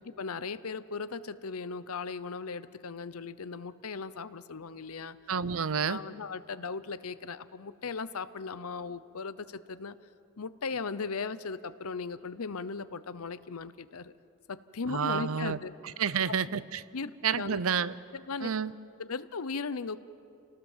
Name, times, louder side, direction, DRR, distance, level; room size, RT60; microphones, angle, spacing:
voice 1, 0.2-5.2 5.9-9.9 10.4-14.1 14.5-15.7 16.3-16.4 16.9-17.6 18.1-18.5 19.0-20.0, left 4 dB, 75° left, 14 dB, 0.7 m, -37 dB
voice 2, 5.3-6.0 14.9-15.6 16.0-16.8 17.2-17.9 18.4-18.7, right 6 dB, 65° right, 17 dB, 0.6 m, -29 dB
28.5 x 18.5 x 7.4 m, 2.5 s
head